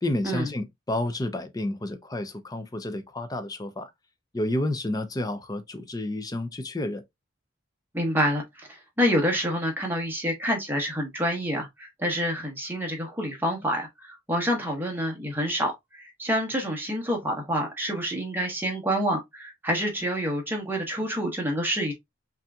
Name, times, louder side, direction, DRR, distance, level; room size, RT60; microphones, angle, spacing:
voice 1, 0.0-3.9 4.3-7.0, left 1 dB, 20° left, 0.5 m, -30 dB
voice 2, 7.9-21.9, equal, 10° right, 1.1 m, -27 dB
5.4 x 2.7 x 2.3 m
head